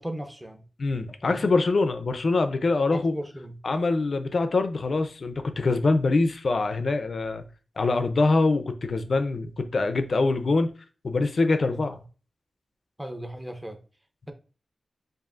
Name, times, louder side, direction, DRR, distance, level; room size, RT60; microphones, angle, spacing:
voice 1, 0.0-0.6 1.2-1.5 2.9-3.5 13.0-13.8, right 1 dB, 10° right, 0.6 m, -36 dB
voice 2, 0.8-3.1 3.6-7.4 7.8-10.7 11.0-12.0, left 3 dB, 55° left, 0.5 m, -24 dB
7.3 x 2.6 x 2.5 m
wide cardioid pair, 140°, 0 cm